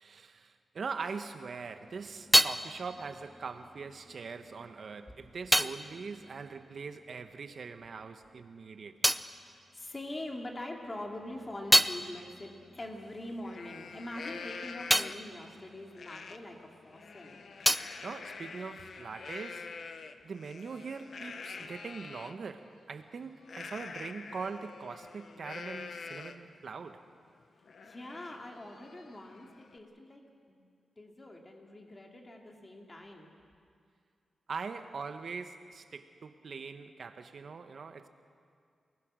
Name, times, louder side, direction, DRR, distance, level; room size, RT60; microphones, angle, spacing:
voice 1, 0.0-8.9 18.0-19.7 20.2-27.0 34.5-38.1, right 5 dB, 55° right, 1.2 m, -42 dB
sound 1, 1.7-7.5 7.8-10.5 10.9-16.9 17.2-19.2, equal, ahead, 0.5 m, -32 dB
voice 2, 9.5-17.4 27.8-30.2 30.5-30.6 31.0-33.3, left 1 dB, 25° left, 2.5 m, -44 dB
Livestock farm animals working animals, 12.8-12.9 13.3-15.4 15.9-16.4 16.8-22.3 23.4-26.5 27.0-27.1 27.4-29.8, left 5 dB, 60° left, 1.1 m, -46 dB
29.0 x 20.0 x 6.3 m
wide cardioid pair, 115°, 0 cm